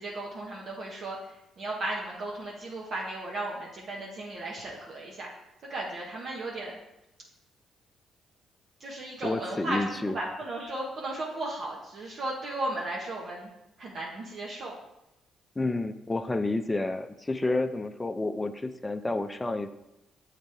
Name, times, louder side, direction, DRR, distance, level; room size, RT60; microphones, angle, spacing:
voice 1, 0.0-5.3 5.7-6.8 8.8-13.5 13.8-14.8, right 2 dB, 55° right, -3 dB, 1.0 m, -35 dB
voice 2, 9.2-10.1 15.6-19.7, left 2 dB, 20° left, 9 dB, 0.5 m, -30 dB
7.4 x 4.1 x 3.4 m, 0.91 s
supercardioid pair, 70°, 0 cm